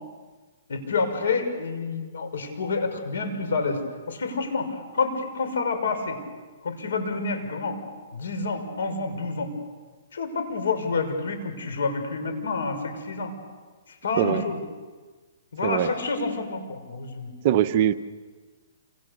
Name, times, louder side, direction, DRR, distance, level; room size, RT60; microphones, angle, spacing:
voice 1, 0.7-6.2 6.6-7.8 8.1-9.5 10.1-13.3 13.9-14.6 15.5-17.3, left 4 dB, 85° left, 7 dB, 5.9 m, -28 dB
voice 2, 17.4-17.9, right 11 dB, 40° right, 8 dB, 1.0 m, -21 dB
28.5 x 27.5 x 6.8 m, 1.4 s
hypercardioid pair, 160°, 0 cm